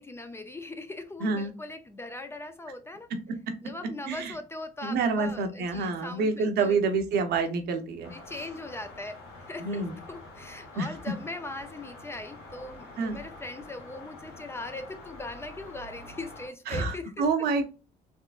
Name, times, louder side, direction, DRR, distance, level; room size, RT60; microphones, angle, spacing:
voice 1, 0.0-3.1 3.6-6.8 8.1-17.3, left 2 dB, 15° left, 0.4 m, -40 dB
voice 2, 1.2-1.5 4.1-4.3 4.8-8.1 9.6-10.0 10.8-10.9 13.0-13.2 16.7-17.6, right 4 dB, 70° right, 0.8 m, -27 dB
sound 1, 8.0-16.5, left 2 dB, 80° left, 1.6 m, -47 dB
3.6 x 3.2 x 2.3 m
cardioid pair, 110°, 17 cm